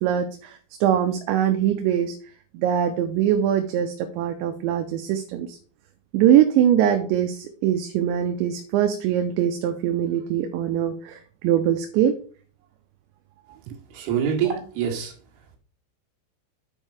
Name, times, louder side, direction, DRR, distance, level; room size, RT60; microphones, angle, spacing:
voice 1, 0.0-2.2 2.5-5.6 6.1-12.1, right 10 dB, 80° right, 7 dB, 2.9 m, -22 dB
voice 2, 13.9-15.1, right 8 dB, 65° right, 0 dB, 3.7 m, -25 dB
9.1 x 5.3 x 4.8 m, 0.43 s
omnidirectional pair, 5.2 m